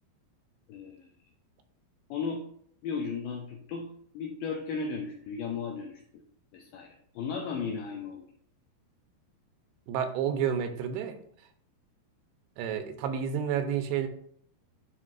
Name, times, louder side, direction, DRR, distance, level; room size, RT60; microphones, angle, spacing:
voice 1, 0.7-1.1 2.1-2.5 2.8-3.9 4.1-6.2 6.5-8.3, left 5 dB, 85° left, 1 dB, 2.0 m, -35 dB
voice 2, 9.9-11.2 12.6-14.1, right 8 dB, 85° right, 8 dB, 2.7 m, -30 dB
11.0 x 4.5 x 2.4 m, 0.63 s
omnidirectional pair, 4.8 m